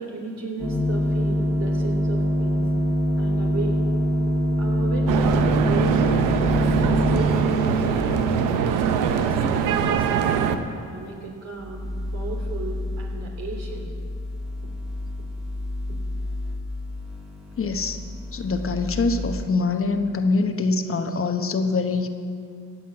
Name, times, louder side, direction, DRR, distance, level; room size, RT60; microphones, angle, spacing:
voice 1, 0.0-2.7 3.2-3.8 4.6-8.2 8.6-10.3 10.7-11.9 12.1-13.9, right 2 dB, 60° right, 0 dB, 3.3 m, -34 dB
sound 1, 0.6-8.3 11.6-19.4, equal, ahead, 1.9 m, -26 dB
sound 2, 5.1-10.6, right 6 dB, 90° right, 0.8 m, -22 dB
voice 2, 17.6-18.0 18.3-22.1, left 3 dB, 45° left, 6 dB, 1.1 m, -24 dB
16.0 x 5.8 x 8.7 m, 2.2 s
supercardioid pair, 70°, 31 cm